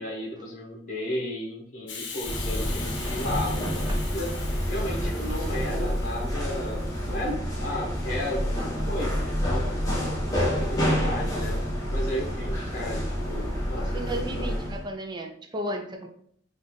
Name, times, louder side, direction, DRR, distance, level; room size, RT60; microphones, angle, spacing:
voice 1, 0.0-4.3 4.7-9.7 10.3-14.6, left 1 dB, 45° left, -3 dB, 1.0 m, -34 dB
Hiss, 1.9-7.2, left 5 dB, 70° left, 0.7 m, -41 dB
sound 1, 2.2-14.8, equal, 20° left, 1.1 m, -28 dB
voice 2, 13.9-16.1, right 1 dB, 25° right, 3 dB, 0.5 m, -34 dB
4.1 x 2.5 x 3.1 m, 0.65 s
head